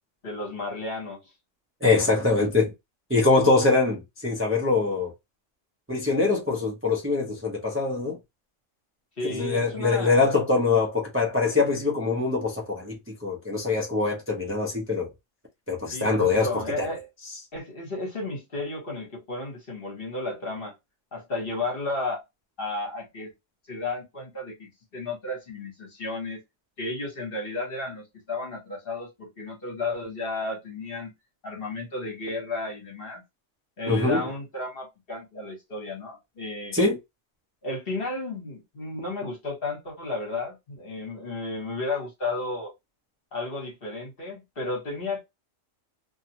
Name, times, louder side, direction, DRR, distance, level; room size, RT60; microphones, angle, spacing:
voice 1, 0.2-1.3 9.2-10.2 15.9-17.1 17.5-20.7 21.1-22.2 22.6-23.3 23.7-26.4 26.8-31.1 31.4-33.2 33.8-36.8 37.6-42.7 43.3-45.2, left 2 dB, 50° left, 1.4 m, -33 dB
voice 2, 1.8-2.7 3.1-5.1 5.9-8.2 9.2-15.1 15.7-16.9 33.9-34.3 36.7-37.0, left 3 dB, 15° right, 0.6 m, -23 dB
2.7 x 2.4 x 2.8 m
omnidirectional pair, 1.3 m